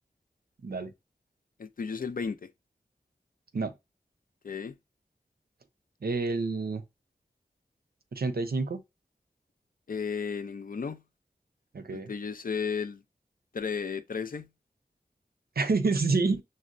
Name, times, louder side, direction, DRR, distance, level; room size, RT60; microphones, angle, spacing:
voice 1, 1.6-2.4 4.4-4.8 9.9-11.0 11.9-13.0 13.5-14.5, left 6 dB, 60° left, 0.4 m, -33 dB
voice 2, 6.0-6.8 8.1-8.8 11.7-12.1 15.6-16.4, right 3 dB, 70° right, 0.6 m, -28 dB
6.1 x 2.1 x 2.5 m
wide cardioid pair, 60°, 17 cm